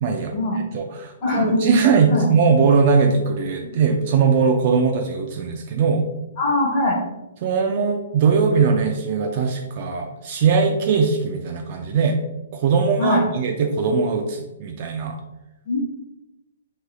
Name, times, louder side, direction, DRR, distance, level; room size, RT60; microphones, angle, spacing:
voice 1, 0.0-0.3 0.7-6.1 7.4-12.2 12.5-15.2, right 5 dB, 30° right, 4 dB, 0.3 m, -20 dB
voice 2, 1.2-1.6 2.1-2.3 3.6-3.7 6.4-7.0 13.0-13.2 15.7-15.8, left 2 dB, 20° left, -2 dB, 0.9 m, -21 dB
6.6 x 3.2 x 2.2 m, 0.99 s
hypercardioid pair, 175°, 0 cm